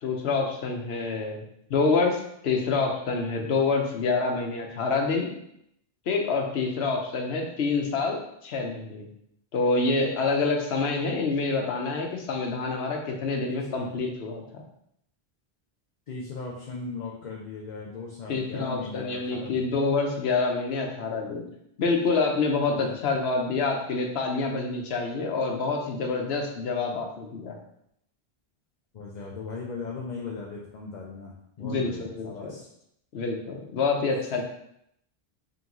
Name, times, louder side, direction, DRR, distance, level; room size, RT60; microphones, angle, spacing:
voice 1, 0.0-5.3 6.1-9.1 9.5-14.6 18.3-21.4 21.8-27.6 31.6-32.5 33.1-34.4, left 4 dB, 85° left, 2 dB, 1.0 m, -27 dB
voice 2, 13.5-13.9 16.1-19.6 22.8-22.9 28.9-32.7, left 4 dB, 55° left, -2 dB, 0.7 m, -38 dB
3.9 x 3.5 x 2.9 m, 0.75 s
omnidirectional pair, 1.0 m